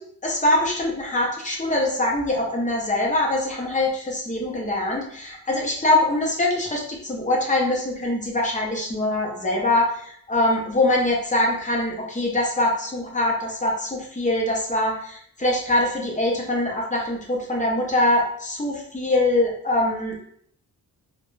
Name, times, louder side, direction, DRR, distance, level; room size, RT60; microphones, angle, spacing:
voice 1, 0.2-20.2, left 1 dB, 20° left, -2 dB, 0.5 m, -23 dB
2.2 x 2.0 x 3.1 m, 0.66 s
wide cardioid pair, 140°, 37 cm